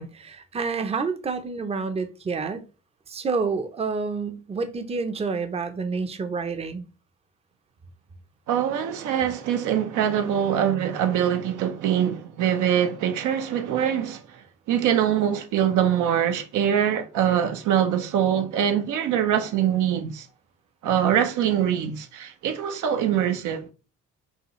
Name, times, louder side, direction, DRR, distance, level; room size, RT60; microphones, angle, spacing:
voice 1, 0.0-2.7 3.1-6.8, right 4 dB, 20° right, 0.5 m, -28 dB
voice 2, 8.5-14.4 14.7-20.3 20.8-23.7, right 9 dB, 80° right, 0.6 m, -23 dB
5.4 x 2.3 x 3.0 m
cardioid pair, 90°, 30 cm